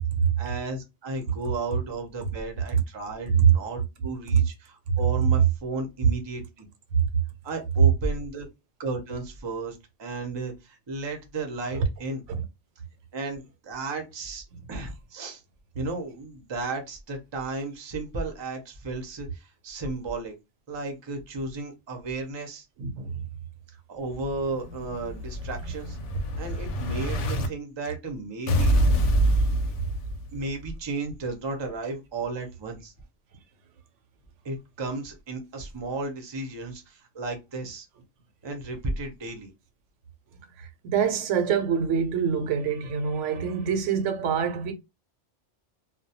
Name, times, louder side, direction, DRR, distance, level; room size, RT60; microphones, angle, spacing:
voice 1, 0.4-6.7 7.4-8.5 8.8-12.3 13.1-15.4 15.7-20.3 20.7-22.7 23.9-26.0 26.4-28.8 30.3-32.9 34.4-37.9 38.4-39.5, right 3 dB, 35° right, 0.4 m, -34 dB
voice 2, 22.8-23.2 40.6-44.7, right 6 dB, 85° right, 0.9 m, -26 dB
Explosion, 24.1-27.5 28.5-30.5, right 1 dB, 90° left, 0.9 m, -25 dB
2.2 x 2.1 x 2.7 m
omnidirectional pair, 1.2 m